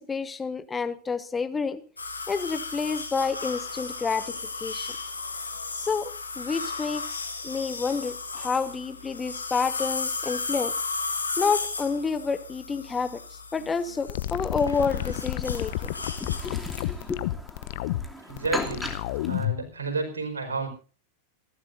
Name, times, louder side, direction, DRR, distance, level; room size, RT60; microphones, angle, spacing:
voice 1, 0.0-1.8 2.3-4.9 5.7-10.7 11.4-13.2 13.5-15.9 16.2-17.2, left 5 dB, 15° left, 12 dB, 1.3 m, -29 dB
sound 1, 2.0-16.9, left 4 dB, 80° left, 2.7 m, -35 dB
sound 2, 14.1-19.7, left 15 dB, 50° left, 0.9 m, -30 dB
Chirp tweet, 14.4-19.5, left 1 dB, ahead, 2.8 m, -39 dB
voice 2, 18.3-18.9 19.2-20.7, right 3 dB, 70° right, 5 dB, 4.8 m, -30 dB
28.0 x 12.0 x 2.7 m, 0.39 s
figure-of-eight pair, 90°, 0 cm